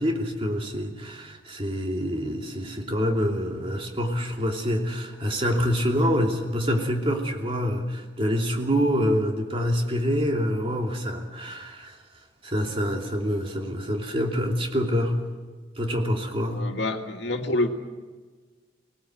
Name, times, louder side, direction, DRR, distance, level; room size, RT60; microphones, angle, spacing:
voice 1, 0.0-12.0 12.4-15.2 15.8-16.7, equal, 30° right, 1 dB, 2.9 m, -26 dB
voice 2, 16.5-17.7, left 2 dB, 80° left, 4 dB, 2.1 m, -27 dB
24.5 x 19.0 x 7.9 m, 1.4 s
head